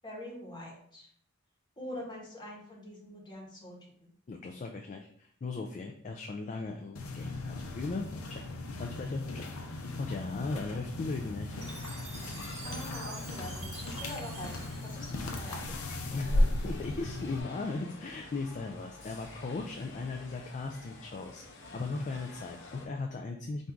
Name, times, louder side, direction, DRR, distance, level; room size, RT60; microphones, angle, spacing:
voice 1, 0.0-1.1 1.8-4.1 12.6-16.5, left 1 dB, 20° left, -3 dB, 1.3 m, -44 dB
voice 2, 4.3-8.0 8.3-8.4 8.8-11.5 16.1-23.7, left 3 dB, 35° left, 3 dB, 0.4 m, -38 dB
sound 1, 7.0-17.4, left 1 dB, 85° left, 0.6 m, -36 dB
sound 2, 11.5-22.9, left 2 dB, 55° left, 0.8 m, -49 dB
Chime, 11.6-15.9, right 4 dB, 30° right, 0.7 m, -48 dB
4.4 x 2.6 x 3.6 m, 0.62 s
head